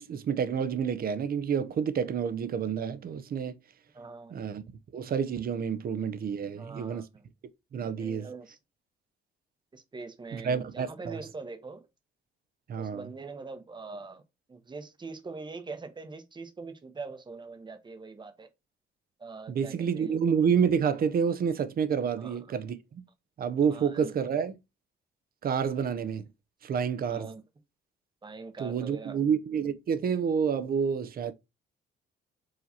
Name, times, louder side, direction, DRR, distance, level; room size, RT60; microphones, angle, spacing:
voice 1, 0.0-3.6 4.3-4.6 4.9-7.0 7.7-8.3 10.3-11.2 12.7-13.0 19.5-23.0 23.4-24.5 25.4-26.2 26.6-27.3 28.6-31.3, right 7 dB, 50° right, 0.6 m, -29 dB
voice 2, 3.9-4.4 6.4-7.2 8.0-8.6 9.7-11.9 12.8-14.2 14.5-18.5 19.2-20.3 22.2-22.6 23.6-24.1 27.0-27.4 28.2-29.2, right 4 dB, 25° right, 0.8 m, -43 dB
4.8 x 3.1 x 2.7 m
cardioid pair, 90°, 20 cm